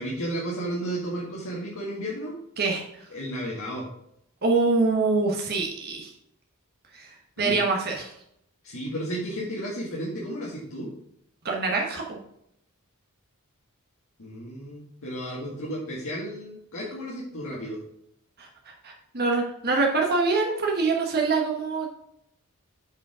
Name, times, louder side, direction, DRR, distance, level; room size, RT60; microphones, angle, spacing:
voice 1, 0.0-2.3 3.1-3.9 6.9-7.0 7.4-7.6 8.6-10.9 14.2-17.8, right 1 dB, 65° left, -4 dB, 1.9 m, -33 dB
voice 2, 2.6-3.1 4.4-6.1 6.9-7.1 7.4-8.1 11.4-12.0 18.4-18.5 18.8-21.9, right 3 dB, 45° right, 0 dB, 1.3 m, -25 dB
8.4 x 5.3 x 5.0 m, 0.76 s
head